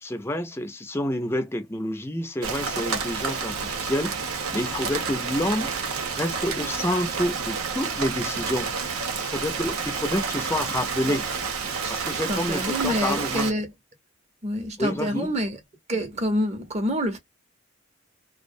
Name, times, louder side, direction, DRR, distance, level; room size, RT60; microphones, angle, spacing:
voice 1, 0.0-4.1 4.5-5.7 6.2-8.7 9.2-11.3 11.9-13.5 14.8-15.3, left 1 dB, 10° left, 0.4 m, -28 dB
Rain, 2.4-13.5, right 5 dB, 85° right, 0.7 m, -29 dB
voice 2, 11.8-13.7 14.4-15.6 15.9-17.2, equal, 30° right, 0.6 m, -27 dB
2.4 x 2.0 x 2.6 m
head